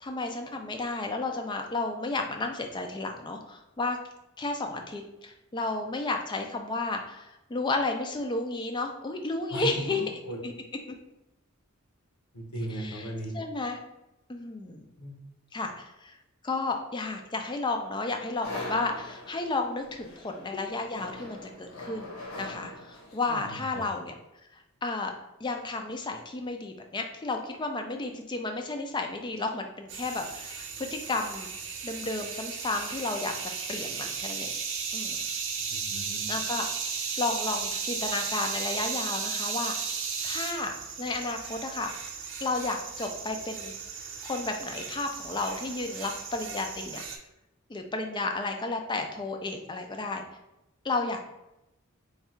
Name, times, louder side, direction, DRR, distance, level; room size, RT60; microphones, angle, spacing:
voice 1, 0.0-4.0 4.4-10.0 10.4-10.5 10.9-11.0 12.7-13.8 14.3-14.9 15.5-16.1 16.4-24.1 24.5-25.1 25.4-31.5 31.8-33.3 33.7-34.5 34.9-35.2 36.3-39.7 40.2-41.9 42.4-43.7 44.2-47.0 47.7-50.2 50.8-51.3, left 3 dB, 20° left, 4 dB, 0.4 m, -32 dB
voice 2, 9.5-10.4 12.3-13.3 15.0-15.2 23.3-23.8 35.7-36.3, equal, 80° left, 0 dB, 1.0 m, -37 dB
sound 1, 18.4-23.4, left 2 dB, 60° left, 0.9 m, -42 dB
sound 2, 29.9-47.2, right 6 dB, 60° right, 0.6 m, -35 dB
3.4 x 2.4 x 4.3 m, 0.92 s
head